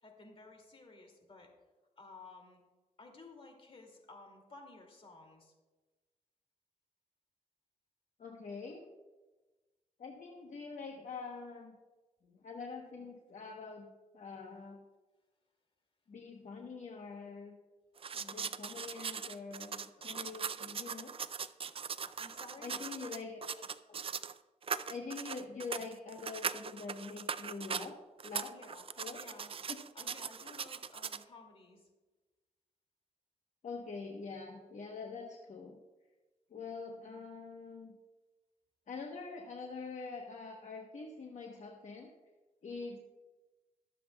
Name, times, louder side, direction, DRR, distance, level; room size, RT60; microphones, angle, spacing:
voice 1, 0.0-1.5 2.0-2.6 3.0-5.5 22.0-22.7 28.5-28.9 29.1-29.6 29.9-31.9 37.0-37.4 42.7-43.0, left 3 dB, 40° left, 2 dB, 2.5 m, -55 dB
voice 2, 8.2-8.9 10.0-11.8 12.3-14.8 16.1-17.6 18.1-21.1 22.6-23.6 24.9-28.0 28.2-28.6 29.0-29.2 33.6-35.8 36.5-38.0 38.9-42.1 42.6-43.0, left 4 dB, 60° left, 1 dB, 1.1 m, -45 dB
sound 1, 18.0-24.4 24.6-27.9 28.2-31.2, right 6 dB, 45° right, 0.4 m, -40 dB
22.0 x 7.5 x 2.3 m, 1.2 s
cardioid pair, 95°, 14 cm